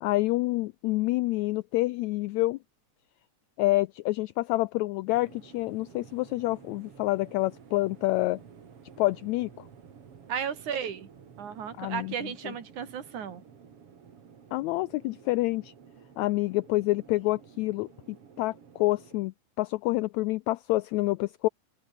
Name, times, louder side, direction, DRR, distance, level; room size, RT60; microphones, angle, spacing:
voice 1, 0.0-2.6 3.6-8.4 9.0-9.5 11.8-12.1 12.4-12.5 14.5-15.7 16.2-17.9 18.4-21.5, left 19 dB, 90° left, 1.6 m, -27 dB
sound 1, 5.1-19.2, right 7 dB, 45° right, 3.1 m, -52 dB
voice 2, 10.3-11.1 11.4-13.4, right 8 dB, 65° right, 3.8 m, -34 dB
open air
omnidirectional pair, 3.8 m